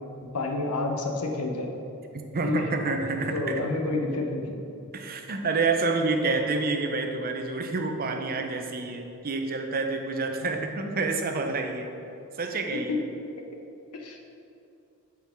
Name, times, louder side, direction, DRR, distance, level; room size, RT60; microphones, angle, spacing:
voice 1, 0.3-1.7 2.4-2.6 3.3-4.6 12.7-13.0 13.9-14.2, left 2 dB, 90° left, 2 dB, 0.9 m, -29 dB
voice 2, 2.3-3.6 4.9-11.9 12.4-12.9, right 3 dB, 40° right, 4 dB, 0.6 m, -28 dB
5.7 x 4.6 x 5.7 m, 2.7 s
head